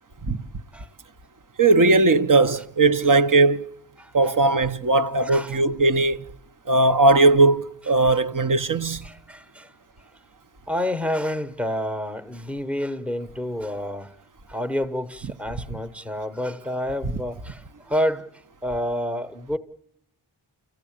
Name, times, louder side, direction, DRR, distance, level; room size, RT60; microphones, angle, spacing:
voice 1, 1.6-3.6 4.1-6.2 6.7-9.0, right 3 dB, 40° right, 0.8 m, -18 dB
voice 2, 4.0-4.3 5.2-5.6 8.1-8.2 9.0-9.7 10.7-14.1 14.5-19.6, equal, ahead, 1.0 m, -29 dB
29.5 x 14.5 x 8.7 m
wide cardioid pair, 50°, 50 cm